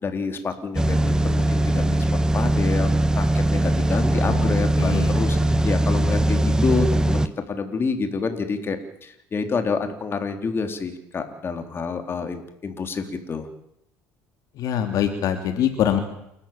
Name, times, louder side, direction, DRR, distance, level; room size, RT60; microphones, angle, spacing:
voice 1, 0.0-2.0 2.3-2.9 3.2-5.4 5.6-13.5, left 4 dB, 35° left, 7 dB, 3.7 m, -28 dB
sound 1, 0.8-7.3, right 1 dB, 10° right, 1.2 m, -21 dB
voice 2, 4.8-5.1 14.6-16.0, left 9 dB, 60° left, 6 dB, 3.1 m, -24 dB
29.0 x 14.0 x 8.9 m, 0.77 s
supercardioid pair, 95°, 7 cm